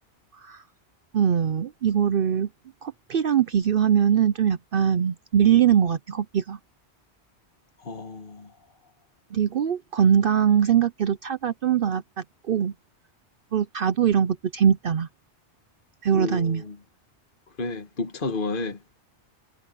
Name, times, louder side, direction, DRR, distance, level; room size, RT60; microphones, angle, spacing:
voice 1, 1.1-2.5 2.8-6.6 9.3-12.7 13.5-15.1 16.0-16.6, right 8 dB, 60° right, 0.8 m, -22 dB
voice 2, 7.8-8.6 16.1-16.8 17.6-18.8, left 3 dB, 50° left, 1.6 m, -31 dB
omnidirectional pair, 1.2 m